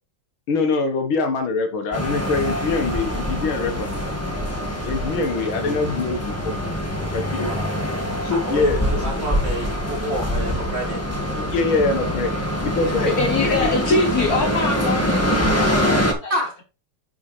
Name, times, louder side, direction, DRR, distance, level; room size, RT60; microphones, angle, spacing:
voice 1, 0.5-4.4 4.8-6.6 7.1-7.6 8.2-9.1 11.4-12.3 12.6-14.0, left 4 dB, 75° left, 2.2 m, -24 dB
sound 1, 1.9-16.1, equal, 10° left, 1.4 m, -24 dB
voice 2, 7.4-7.7 8.3-11.0 12.8-13.1 16.3-16.5, right 1 dB, 30° right, 2.1 m, -28 dB
voice 3, 12.8-16.4, left 2 dB, 50° left, 1.5 m, -24 dB
9.3 x 5.8 x 3.3 m
omnidirectional pair, 2.3 m